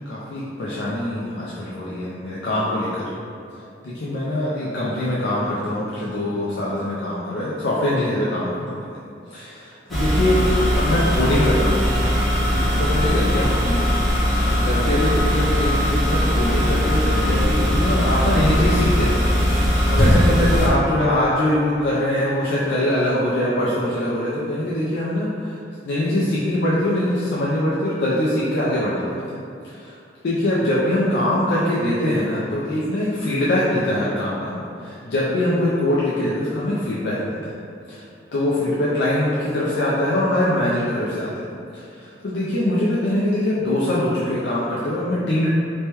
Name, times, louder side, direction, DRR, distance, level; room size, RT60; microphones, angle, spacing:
voice 1, 0.0-3.1 3.8-8.8 9.3-10.4 10.7-11.8 12.8-13.9 14.5-25.6 25.8-29.4 29.6-30.0 30.2-37.6 37.9-38.0 38.3-41.5 41.7-45.5, left 1 dB, 75° left, -7 dB, 0.4 m, -23 dB
sound 1, 9.9-20.7, equal, ahead, 0.6 m, -19 dB
3.1 x 2.2 x 2.9 m, 2.5 s
head